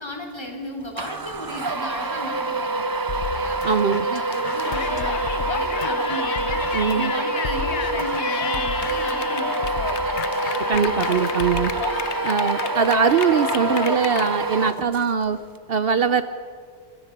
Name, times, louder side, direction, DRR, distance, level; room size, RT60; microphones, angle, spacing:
voice 1, 0.0-3.6 4.0-6.6 6.9-10.7, left 1 dB, 25° left, 1 dB, 3.6 m, -36 dB
sound 1, 1.0-15.2, right 3 dB, 25° right, 0.6 m, -26 dB
sound 2, 3.1-7.1 7.4-11.8, left 7 dB, 50° left, 0.8 m, -35 dB
voice 2, 3.6-4.2 6.7-7.1 10.7-11.7 12.2-15.4 15.7-16.2, right 6 dB, 60° right, 12 dB, 0.9 m, -21 dB
Yell, 4.6-14.3, left 9 dB, 85° left, 1.1 m, -31 dB
25.5 x 24.0 x 5.3 m, 2.1 s
omnidirectional pair, 1.1 m